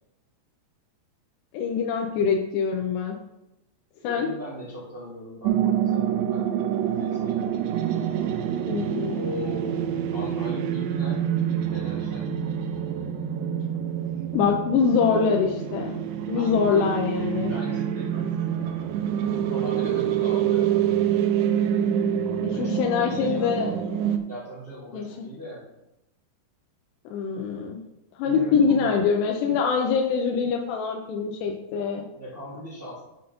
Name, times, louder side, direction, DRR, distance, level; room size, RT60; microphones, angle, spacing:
voice 1, 1.5-3.2 4.0-4.3 8.7-9.2 14.3-16.0 16.3-17.5 22.4-23.7 24.9-25.1 27.1-27.8 28.2-32.0, left 6 dB, 80° left, 1 dB, 2.8 m, -24 dB
voice 2, 4.0-7.6 9.1-11.2 11.7-12.3 16.3-16.9 17.3-18.9 19.5-20.7 22.5-23.7 24.2-25.7 28.2-28.9 32.0-33.0, equal, 30° right, -7 dB, 0.9 m, -38 dB
sound 1, 5.4-24.2, right 9 dB, 85° right, 2.7 m, -26 dB
7.7 x 5.3 x 5.5 m, 0.89 s
omnidirectional pair, 5.0 m